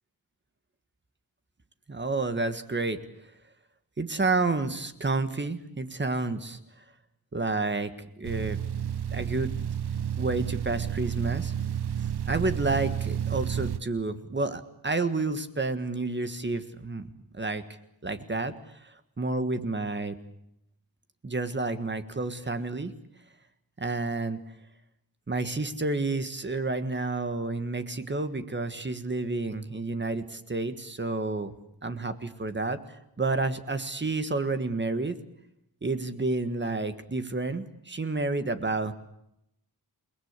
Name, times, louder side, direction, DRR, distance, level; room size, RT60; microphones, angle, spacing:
voice 1, 1.9-3.0 4.0-6.6 7.3-7.9 8.2-8.6 9.1-9.5 10.2-11.5 12.3-17.1 17.3-17.6 18.0-20.1 21.2-22.9 23.8-24.4 25.3-31.6 31.8-35.2 35.8-38.9, right 3 dB, 30° right, 9 dB, 1.6 m, -30 dB
sound 1, 8.2-13.8, right 9 dB, 75° right, 1.1 m, -31 dB
29.5 x 19.5 x 8.2 m, 0.80 s
wide cardioid pair, 175°, 39 cm